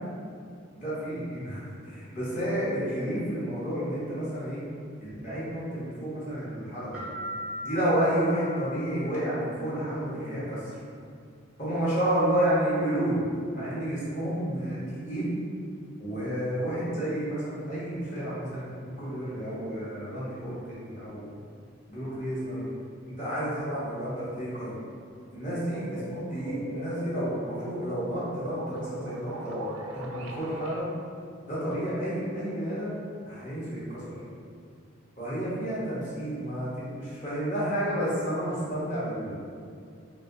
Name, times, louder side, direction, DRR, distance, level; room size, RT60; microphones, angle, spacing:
voice 1, 0.7-4.6 5.0-7.0 7.6-10.7 11.6-13.2 13.5-15.4 16.0-21.3 21.9-22.7 23.1-24.8 25.3-30.9 31.5-32.9 33.3-34.2 35.2-39.3, right 1 dB, 35° left, -10 dB, 1.0 m, -30 dB
sound 1, 6.9-9.6, left 1 dB, ahead, 0.6 m, -38 dB
sound 2, 25.6-30.8, equal, 85° right, 0.4 m, -39 dB
3.1 x 2.9 x 2.6 m, 2.3 s
head